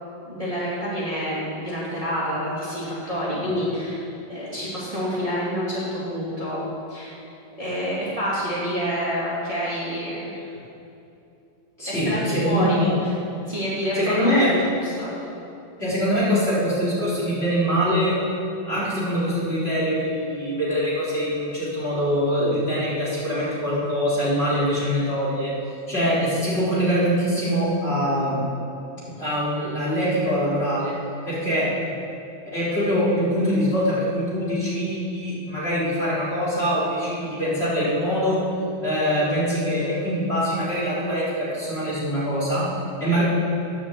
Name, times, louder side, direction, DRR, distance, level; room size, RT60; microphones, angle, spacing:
voice 1, 0.2-6.6 6.9-7.1 7.6-10.5 11.9-12.8 13.0-13.1 13.5-14.4 14.7-15.2, equal, 15° right, -8 dB, 3.0 m, -28 dB
voice 2, 11.8-12.9 13.9-14.6 15.8-18.2 18.7-25.5 25.9-28.4 29.2-30.9 31.2-31.8 32.5-38.5 38.8-42.7 43.0-43.2, equal, 30° left, -8 dB, 4.4 m, -23 dB
12.0 x 9.9 x 8.2 m, 2.8 s
omnidirectional pair, 2.2 m